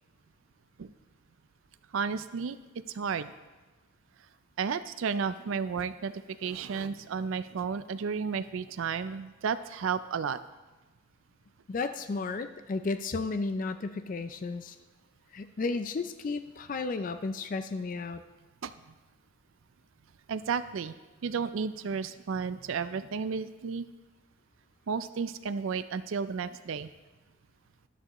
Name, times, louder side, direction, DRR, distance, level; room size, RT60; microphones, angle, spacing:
voice 1, 1.9-2.6 2.9-3.3 4.6-10.4 18.6-18.7 20.3-20.9 21.2-23.8 24.9-26.9, right 6 dB, 80° right, 13 dB, 0.4 m, -32 dB
voice 2, 11.7-14.8 15.3-18.2, left 3 dB, 40° left, 10 dB, 0.4 m, -33 dB
13.0 x 11.0 x 3.0 m, 1.2 s
head